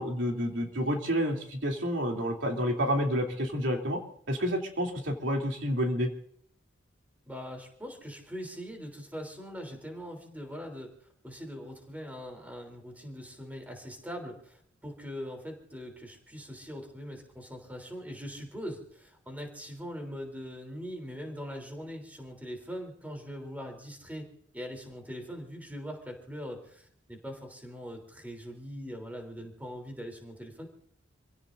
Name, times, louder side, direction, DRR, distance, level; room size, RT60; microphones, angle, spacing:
voice 1, 0.0-4.0 4.3-6.1, equal, 75° right, 1 dB, 3.0 m, -29 dB
voice 2, 7.3-24.3 24.5-30.7, equal, 10° right, 3 dB, 3.4 m, -42 dB
28.0 x 17.0 x 2.6 m, 0.63 s
head